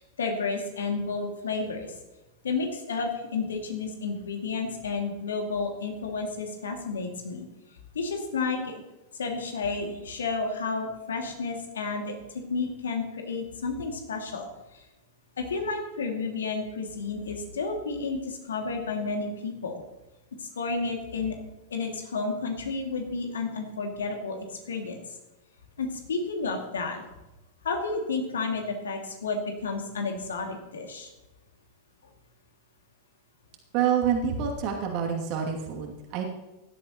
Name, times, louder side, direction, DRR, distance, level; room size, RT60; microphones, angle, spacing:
voice 1, 0.0-1.9 2.4-7.5 7.9-8.8 9.1-14.9 15.4-19.8 20.4-21.4 21.7-25.2 25.8-27.0 27.6-31.1, left 4 dB, 65° left, 3 dB, 2.3 m, -31 dB
voice 2, 33.7-36.2, right 8 dB, 40° right, 2 dB, 2.6 m, -27 dB
16.5 x 12.0 x 3.0 m, 1.0 s
figure-of-eight pair, 90°, 0 cm